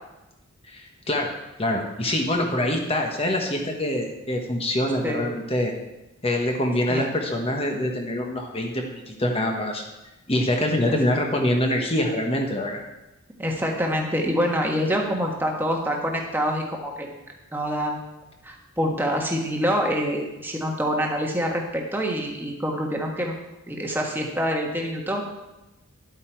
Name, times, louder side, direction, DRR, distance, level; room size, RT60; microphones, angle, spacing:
voice 1, 0.6-1.3 1.6-5.7 6.2-9.8 10.3-12.8, left 1 dB, 25° left, 2 dB, 1.2 m, -25 dB
voice 2, 13.4-17.1 17.5-18.1 18.4-23.3 23.7-25.2, equal, 10° right, 0 dB, 1.3 m, -26 dB
11.0 x 8.1 x 4.6 m, 0.99 s
head